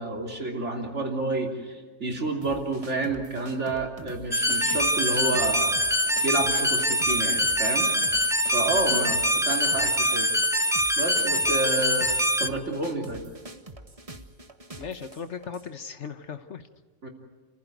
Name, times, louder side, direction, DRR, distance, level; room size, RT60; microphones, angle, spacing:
voice 1, 0.0-5.7 6.2-7.9 8.5-9.2 9.4-10.3 11.0-12.1 12.4-13.2 17.0-17.1, right 2 dB, 55° right, 2 dB, 3.5 m, -29 dB
sound 1, 2.4-15.7, right 2 dB, 25° right, 1.3 m, -45 dB
sound 2, 4.3-12.5, equal, 5° right, 0.3 m, -24 dB
voice 2, 14.8-16.7, left 6 dB, 60° left, 10 dB, 1.3 m, -37 dB
29.5 x 15.5 x 9.3 m, 1.5 s
omnidirectional pair, 1.4 m